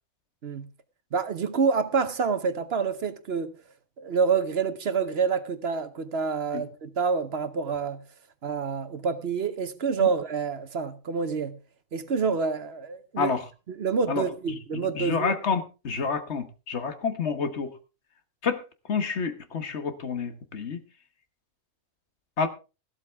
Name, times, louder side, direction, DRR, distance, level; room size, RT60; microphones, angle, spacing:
voice 1, 1.1-3.5 4.0-8.0 8.4-11.6 11.9-13.4 13.7-15.3, right 5 dB, 60° right, 1.1 m, -27 dB
voice 2, 14.7-17.7 18.4-18.6 18.9-20.8 22.4-22.5, left 5 dB, 60° left, 1.5 m, -29 dB
14.0 x 12.5 x 3.5 m
omnidirectional pair, 1.3 m